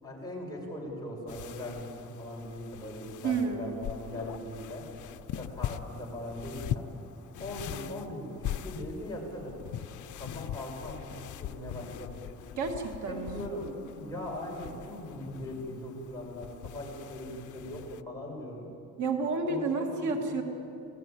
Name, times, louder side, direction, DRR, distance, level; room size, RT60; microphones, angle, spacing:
voice 1, 0.0-4.8 5.3-6.9 7.4-8.4 8.6-9.6 10.2-12.2 13.1-18.7 19.4-20.4, left 1 dB, 10° left, -3 dB, 6.0 m, -40 dB
sound 1, 1.3-18.0, left 11 dB, 75° left, 0.7 m, -41 dB
voice 2, 3.2-3.7 12.6-13.4 19.0-20.4, right 4 dB, 70° right, 3 dB, 2.3 m, -30 dB
27.0 x 18.0 x 9.0 m, 2.7 s
wide cardioid pair, 175°, 30 cm